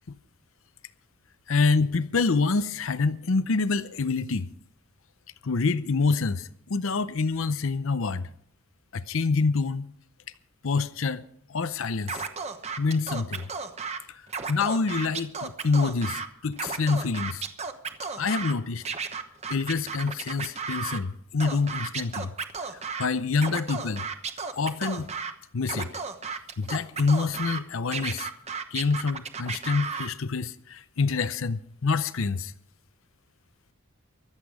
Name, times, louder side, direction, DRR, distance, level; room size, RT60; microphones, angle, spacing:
voice 1, 1.5-4.5 5.4-8.3 8.9-9.9 10.6-11.2 11.5-12.3 12.8-13.5 14.1-17.4 18.2-18.8 19.5-22.3 23.0-24.1 24.5-25.1 25.5-25.9 26.3-28.3 28.7-32.5, left 4 dB, 65° left, 0.6 m, -26 dB
Scratching (performance technique), 12.1-14.0 14.3-16.3 16.5-18.5 18.9-21.0 21.4-23.1 23.4-25.3 25.7-27.6 27.9-30.1, right 5 dB, 30° right, 1.1 m, -34 dB
24.0 x 8.3 x 4.9 m
head